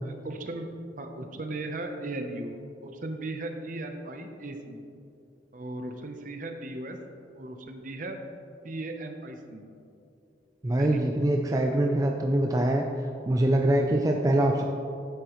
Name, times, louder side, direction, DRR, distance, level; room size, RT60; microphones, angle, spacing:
voice 1, 0.0-2.5 2.8-4.8 5.5-7.0 7.4-8.2 8.6-9.6 10.8-11.0 11.9-12.1, right 2 dB, 45° right, 5 dB, 0.7 m, -37 dB
voice 2, 10.6-12.9 13.3-14.6, right 1 dB, 20° right, 2 dB, 0.4 m, -24 dB
10.0 x 8.1 x 3.1 m, 2.6 s
head